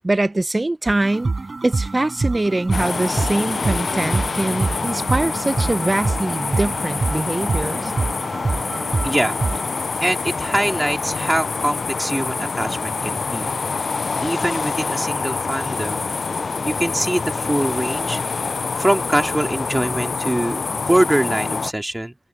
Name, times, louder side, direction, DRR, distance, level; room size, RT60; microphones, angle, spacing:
voice 1, 0.0-1.3 1.6-7.9, right 2 dB, 35° right, 0.7 m, -23 dB
sound 1, 0.9-9.9, right 3 dB, 55° right, 5.2 m, -26 dB
sound 2, 2.7-21.7, left 4 dB, 75° left, 0.4 m, -26 dB
voice 2, 8.8-9.4 10.0-13.5 13.8-13.9 14.2-16.1 16.6-18.2 18.7-22.2, right 1 dB, 15° right, 2.7 m, -23 dB
cardioid pair, 50°, 0 cm